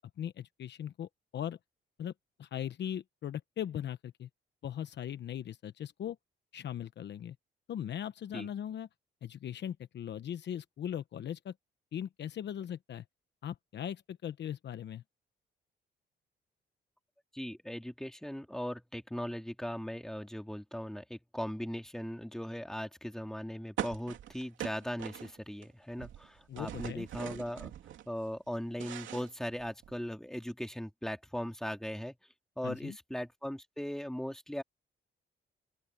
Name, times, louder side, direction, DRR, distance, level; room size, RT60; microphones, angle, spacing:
voice 1, 0.2-1.6 2.0-2.1 2.4-4.3 4.6-6.2 6.5-7.4 7.7-8.9 9.2-11.5 11.9-13.0 13.4-15.0 26.5-27.1 32.6-33.0, left 10 dB, 60° left, 1.0 m, -39 dB
voice 2, 17.3-27.7 28.1-32.1 32.6-34.6, equal, ahead, 3.1 m, -39 dB
sound 1, 23.8-25.7 25.9-28.1 28.5-30.0, right 11 dB, 75° right, 2.9 m, -42 dB
open air
cardioid pair, 90°, 20 cm